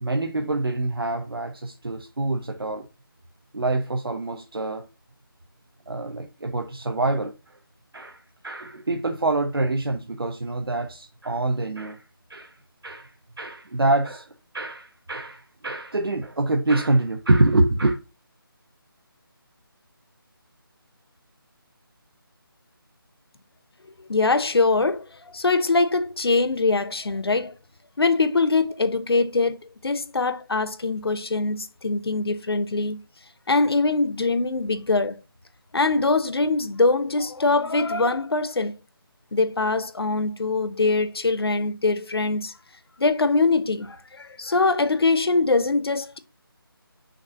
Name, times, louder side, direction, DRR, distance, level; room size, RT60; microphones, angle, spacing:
voice 1, 0.0-2.8 3.5-4.8 5.9-7.5 7.9-12.0 12.3-12.6 12.8-13.1 13.4-14.3 14.5-18.0, right 2 dB, 75° right, 1.0 m, -25 dB
voice 2, 24.1-27.5 28.0-33.0 33.5-35.2 35.7-38.7 39.3-42.5 43.0-46.2, left 3 dB, 90° left, 0.8 m, -23 dB
6.4 x 2.7 x 5.6 m
figure-of-eight pair, 180°, 13 cm